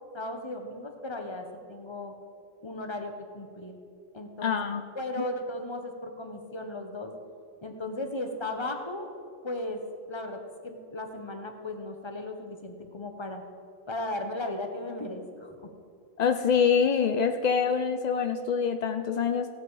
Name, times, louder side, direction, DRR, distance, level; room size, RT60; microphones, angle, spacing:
voice 1, 0.1-2.1 2.6-3.7 4.1-4.6 4.9-7.1 7.6-9.1 9.4-9.8 10.1-13.4 13.9-15.7, left 1 dB, 25° left, 5 dB, 1.0 m, -36 dB
voice 2, 4.4-4.8 16.2-19.5, left 6 dB, 70° left, 8 dB, 0.4 m, -25 dB
16.5 x 8.0 x 4.8 m, 2.4 s
omnidirectional pair, 1.4 m